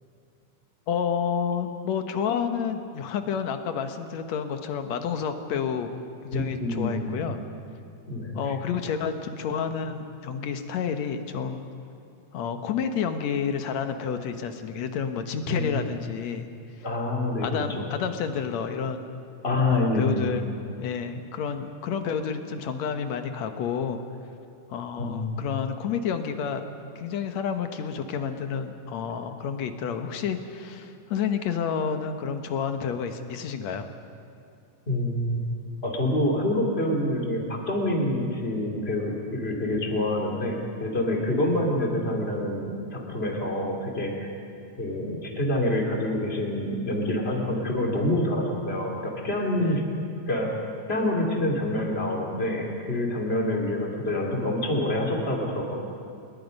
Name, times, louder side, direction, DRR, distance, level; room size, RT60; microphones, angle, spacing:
voice 1, 0.9-5.9 6.2-7.4 8.4-11.6 12.3-16.5 17.4-19.1 19.7-20.5 20.8-24.0 24.7-26.6 27.0-33.9 49.6-49.8, left 7 dB, 70° left, 7 dB, 2.4 m, -30 dB
voice 2, 6.3-7.2 8.1-8.6 15.5-15.8 16.8-17.8 19.4-20.3 25.0-25.5 34.9-35.4 35.8-44.3 44.8-49.8 50.3-50.5 50.9-55.8, left 1 dB, 20° left, 0 dB, 3.1 m, -27 dB
28.5 x 21.0 x 5.4 m, 2.5 s
omnidirectional pair, 3.4 m